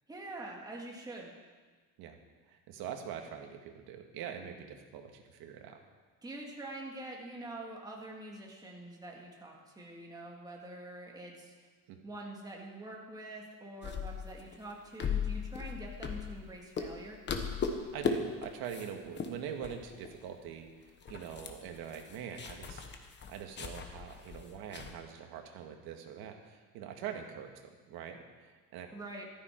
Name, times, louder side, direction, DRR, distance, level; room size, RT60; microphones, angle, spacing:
voice 1, 0.1-1.3 6.2-11.5 12.0-17.2 28.9-29.3, right 1 dB, 10° right, -1 dB, 1.9 m, -45 dB
voice 2, 2.5-5.8 11.9-12.0 17.6-22.8 23.3-28.9, right 8 dB, 80° right, 4 dB, 1.8 m, -44 dB
sound 1, 13.8-16.5 16.8-17.0 17.3-18.1 18.4-18.9 19.2-19.3 19.6-20.2 20.5-20.6 20.9-24.9, left 6 dB, 30° left, 1.1 m, -37 dB
14.5 x 13.0 x 4.5 m, 1.4 s
cardioid pair, 165°, 37 cm